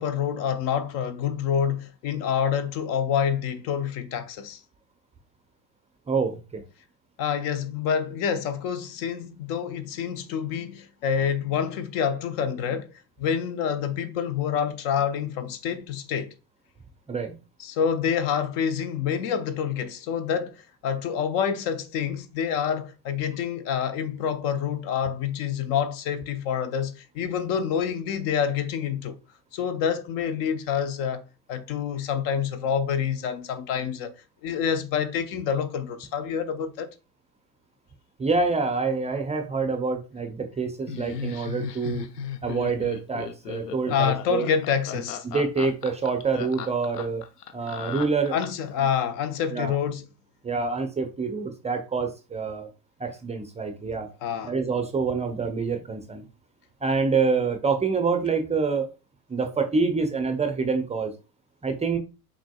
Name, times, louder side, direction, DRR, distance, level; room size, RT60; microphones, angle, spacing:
voice 1, 0.0-4.6 7.2-12.9 13.2-16.3 17.6-29.2 29.5-31.2 31.5-34.1 34.4-36.9 43.9-45.3 48.3-50.0 54.2-54.6, left 7 dB, 45° left, 0.7 m, -27 dB
voice 2, 6.1-6.6 17.1-17.3 38.2-42.1 42.4-44.5 45.2-47.2 47.5-48.3 48.8-48.9 49.5-49.8 50.4-52.7 53.0-54.1 54.4-56.2 56.8-58.9 59.3-61.1 61.6-62.0, right 4 dB, 15° right, 0.6 m, -26 dB
Laughter, 40.9-48.7, left 7 dB, 75° left, 0.8 m, -36 dB
6.0 x 3.8 x 2.2 m
figure-of-eight pair, 70°, 48 cm